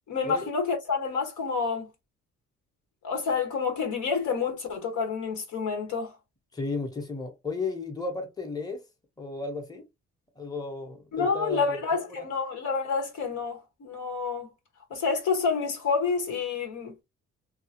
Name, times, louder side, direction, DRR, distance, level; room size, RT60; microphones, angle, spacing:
voice 1, 0.1-1.9 3.0-6.1 11.1-14.5 14.9-16.9, left 5 dB, 75° left, 1.4 m, -28 dB
voice 2, 6.5-8.8 9.2-9.9 10.4-12.3, left 3 dB, 10° left, 1.0 m, -34 dB
2.9 x 2.3 x 2.8 m
cardioid pair, 90°, 30 cm